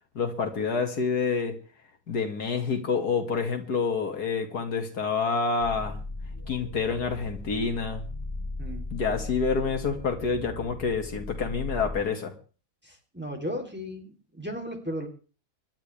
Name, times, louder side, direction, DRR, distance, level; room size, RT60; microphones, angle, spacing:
voice 1, 0.2-1.5 2.1-6.0 6.5-8.0 8.9-12.3, left 5 dB, 80° left, 5 dB, 2.5 m, -28 dB
sound 1, 5.6-12.0, left 2 dB, 15° left, 2.9 m, -37 dB
voice 2, 12.8-15.1, equal, 5° right, 2 dB, 3.0 m, -35 dB
24.5 x 11.5 x 3.3 m, 0.37 s
omnidirectional pair, 1.7 m